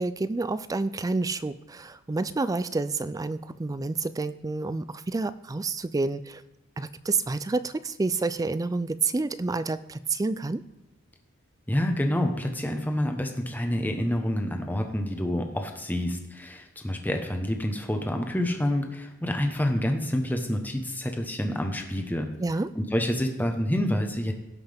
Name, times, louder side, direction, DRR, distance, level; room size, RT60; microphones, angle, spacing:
voice 1, 0.0-6.4 6.8-10.6 22.4-22.7, right 3 dB, 15° right, 14 dB, 0.3 m, -29 dB
voice 2, 11.7-22.3 22.7-24.3, left 1 dB, 10° left, 4 dB, 1.0 m, -28 dB
17.5 x 5.8 x 3.5 m, 1.0 s
head